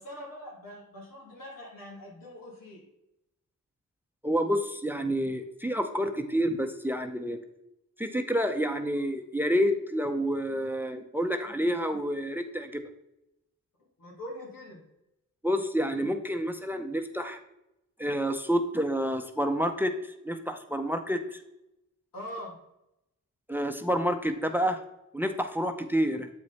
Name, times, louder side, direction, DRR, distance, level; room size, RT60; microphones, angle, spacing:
voice 1, 0.0-2.9 14.0-14.8 22.1-22.5, equal, 90° left, -4 dB, 2.9 m, -43 dB
voice 2, 4.2-7.4 8.0-12.8 15.4-17.4 18.0-21.4 23.5-24.8 25.1-26.3, equal, 5° right, 7 dB, 0.6 m, -29 dB
8.1 x 4.8 x 4.2 m, 0.87 s
cardioid pair, 80°, 33 cm